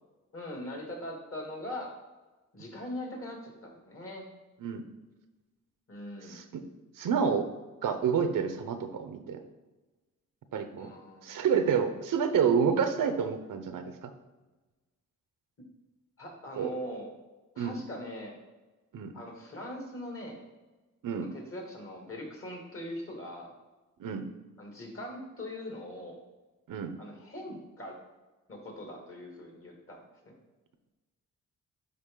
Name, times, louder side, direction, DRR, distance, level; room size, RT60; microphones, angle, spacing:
voice 1, 0.3-1.9 2.5-4.3 5.9-6.4 10.8-11.3 16.2-17.1 17.5-18.4 19.1-20.4 21.5-23.5 24.6-26.2 27.0-27.9 28.5-30.3, left 1 dB, 45° left, 0 dB, 2.5 m, -41 dB
voice 2, 6.3-6.6 7.0-7.5 7.8-9.4 10.5-10.9 11.2-14.1 16.6-16.7 17.6-17.8 18.9-19.1 21.0-21.3 24.0-24.2 26.7-26.9, right 6 dB, 80° right, 8 dB, 0.8 m, -29 dB
10.5 x 3.9 x 3.8 m, 1.2 s
cardioid pair, 80°, 32 cm